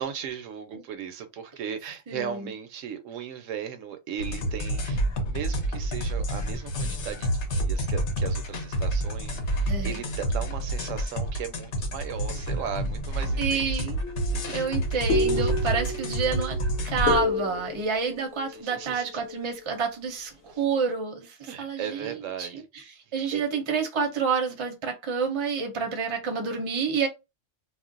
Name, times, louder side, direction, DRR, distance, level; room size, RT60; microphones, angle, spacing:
voice 1, 0.0-13.8 14.3-14.7 15.3-15.5 15.9-16.0 18.5-19.2 20.5-20.6 21.5-22.7 23.3-23.4, right 8 dB, 75° right, 0.9 m, -37 dB
voice 2, 2.1-2.5 9.7-10.0 13.4-14.0 14.5-16.6 16.8-22.8 23.1-27.1, right 5 dB, 30° right, 0.6 m, -29 dB
sound 1, 4.2-17.2, right 1 dB, 65° left, 0.9 m, -29 dB
sound 2, 14.0-19.6, left 2 dB, 90° left, 1.1 m, -30 dB
2.4 x 2.0 x 3.7 m
omnidirectional pair, 1.3 m